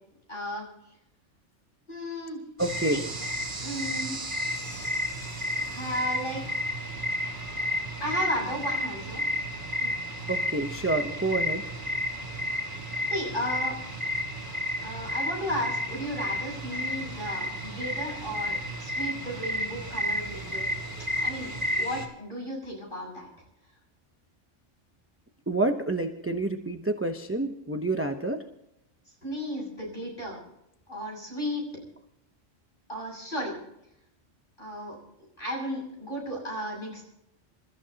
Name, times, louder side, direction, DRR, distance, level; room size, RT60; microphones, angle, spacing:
voice 1, 0.3-0.7 1.9-2.4 2.9-3.0 3.6-4.2 5.6-6.4 8.0-9.3 9.8-10.0 13.1-13.8 14.8-20.7 21.2-21.5 21.8-23.3 29.2-30.4 30.9-31.7 32.9-33.6 34.6-35.0 35.4-37.1, equal, 40° left, -2 dB, 7.5 m, -34 dB
voice 2, 2.6-3.0 10.3-11.7 25.5-28.4, right 2 dB, 10° right, 4 dB, 0.8 m, -28 dB
sound 1, 2.6-22.1, equal, 40° right, 3.3 m, -32 dB
28.0 x 14.5 x 2.9 m, 0.82 s
omnidirectional pair, 1.3 m